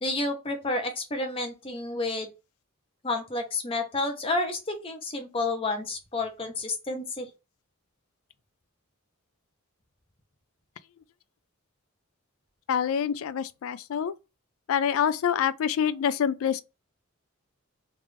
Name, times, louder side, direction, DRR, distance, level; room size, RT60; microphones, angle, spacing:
voice 1, 0.0-2.3 3.0-7.3, left 2 dB, 25° left, 0.8 m, -30 dB
voice 2, 12.7-14.1 14.7-16.6, left 8 dB, 70° left, 0.3 m, -26 dB
3.3 x 2.5 x 3.3 m
head